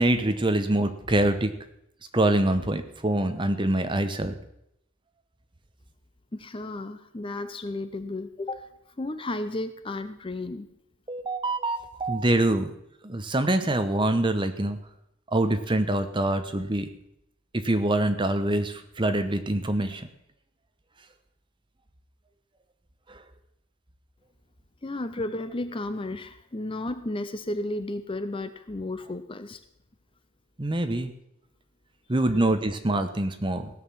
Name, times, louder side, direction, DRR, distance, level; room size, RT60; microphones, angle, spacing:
voice 1, 0.0-1.5 2.1-4.4 11.1-12.7 13.0-14.8 15.3-16.9 17.5-20.1 30.6-31.1 32.1-33.7, right 1 dB, 20° right, 9 dB, 0.9 m, -25 dB
voice 2, 6.3-8.7 9.0-10.7 24.8-29.6, left 2 dB, 25° left, 10 dB, 0.6 m, -33 dB
16.5 x 6.6 x 7.3 m, 0.78 s
head